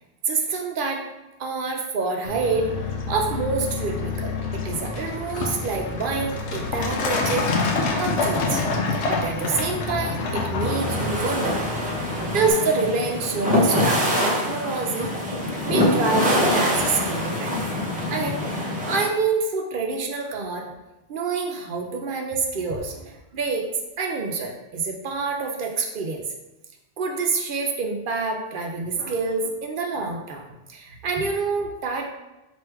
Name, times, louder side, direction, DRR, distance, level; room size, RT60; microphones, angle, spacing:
voice 1, 0.3-1.0 1.4-2.7 3.1-7.6 7.9-8.6 9.0-11.6 12.3-15.1 15.6-17.8 18.1-20.7 21.1-23.7 24.0-26.2 27.0-30.4 30.7-32.1, right 4 dB, 55° right, 2 dB, 0.7 m, -27 dB
Truck, 2.3-12.5, left 3 dB, 85° left, 0.9 m, -27 dB
sound 1, 10.6-19.1, left 1 dB, 10° right, 0.6 m, -24 dB
3.3 x 2.6 x 4.5 m, 1.0 s
omnidirectional pair, 1.2 m